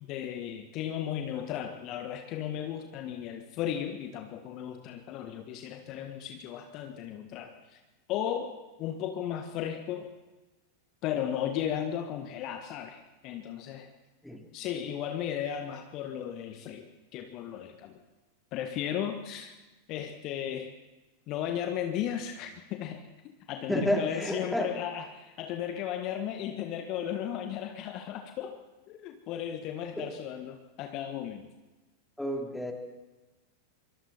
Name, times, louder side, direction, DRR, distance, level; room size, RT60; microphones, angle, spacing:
voice 1, 0.0-7.8 8.1-10.1 11.0-13.9 14.5-18.0 18.5-19.5 19.9-20.7 21.3-23.0 23.5-28.6 28.9-31.5, left 10 dB, 40° left, 6 dB, 1.6 m, -35 dB
voice 2, 23.7-24.7 30.0-30.1 32.2-32.7, equal, ahead, 2 dB, 3.5 m, -30 dB
25.5 x 23.0 x 4.4 m, 1.1 s
figure-of-eight pair, 90°, 0 cm